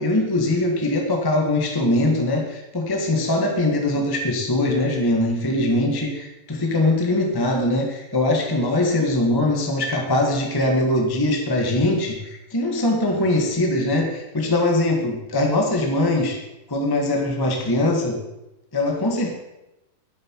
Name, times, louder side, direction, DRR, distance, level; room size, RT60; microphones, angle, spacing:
voice 1, 0.0-16.4 16.7-18.2 18.7-19.3, left 1 dB, 15° left, 1 dB, 0.7 m, -22 dB
12.5 x 11.5 x 4.8 m, 0.94 s
omnidirectional pair, 4.0 m